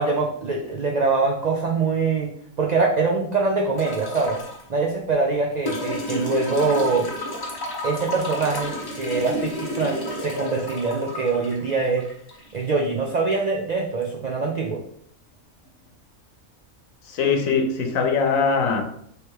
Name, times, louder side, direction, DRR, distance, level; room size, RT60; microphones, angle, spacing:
voice 1, 0.0-2.3 2.6-4.4 4.7-7.1 7.8-12.0 12.5-14.8, right 4 dB, 70° right, 0.4 m, -23 dB
sound 1, 3.8-4.6 5.7-12.7 14.0-14.1, left 1 dB, 20° left, 0.6 m, -31 dB
voice 2, 17.1-18.8, left 5 dB, 75° left, 1.1 m, -21 dB
3.2 x 3.2 x 4.6 m
omnidirectional pair, 1.4 m